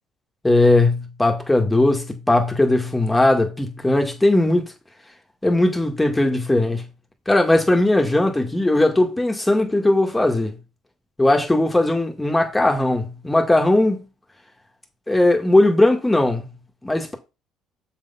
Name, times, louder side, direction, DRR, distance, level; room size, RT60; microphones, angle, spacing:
voice 1, 0.4-4.7 5.4-6.8 7.3-10.6 11.2-14.0 15.1-16.4 16.8-17.1, left 2 dB, 10° left, 1.7 m, -18 dB
6.9 x 4.1 x 5.5 m
cardioid pair, 100°, 0 cm